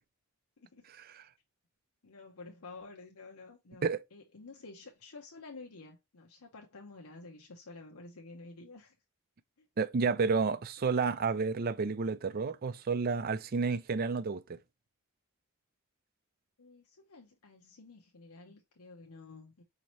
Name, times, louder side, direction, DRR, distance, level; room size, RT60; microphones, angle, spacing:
voice 1, 0.6-0.9 2.0-9.0 9.6-9.7 16.6-19.6, left 3 dB, 85° left, 0.8 m, -51 dB
voice 2, 9.8-14.6, right 4 dB, 45° right, 0.4 m, -30 dB
5.2 x 2.9 x 3.0 m
head